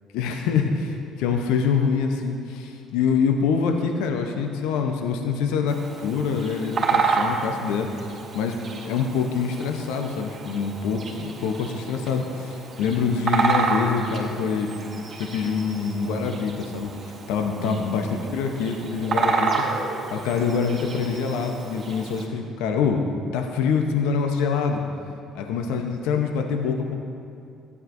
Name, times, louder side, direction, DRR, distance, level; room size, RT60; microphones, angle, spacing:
voice 1, 0.1-7.9 8.3-8.6 8.8-14.7 15.2-16.9 17.3-19.5 20.1-23.0 23.3-24.8 25.3-27.0, left 5 dB, 75° left, 3 dB, 0.8 m, -25 dB
Bird vocalization bird call bird song, 5.7-22.3, right 4 dB, 40° right, 2.6 m, -30 dB
14.5 x 9.6 x 2.6 m, 2.5 s
hypercardioid pair, 60°, 0 cm